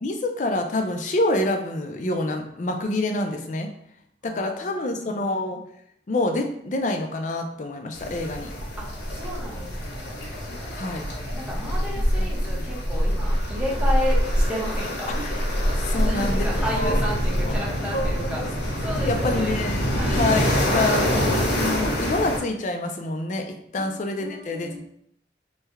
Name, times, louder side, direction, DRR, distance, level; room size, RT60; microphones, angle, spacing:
voice 1, 0.0-3.7 4.2-5.6 6.1-8.5 10.8-11.0 12.1-12.3 15.1-15.3 15.8-16.5 16.7-17.1 17.5-17.6 17.9-18.5 19.1-21.3 21.6-24.8, left 2 dB, 45° left, 4 dB, 0.4 m, -27 dB
voice 2, 4.2-5.2 8.8-15.1 15.9-18.4 18.8-19.6 20.0-20.2 23.8-23.9 24.2-24.8, equal, 5° right, -6 dB, 0.7 m, -33 dB
sound 1, 7.9-22.4, equal, 80° left, 0.8 m, -25 dB
3.3 x 2.2 x 3.3 m, 0.72 s
head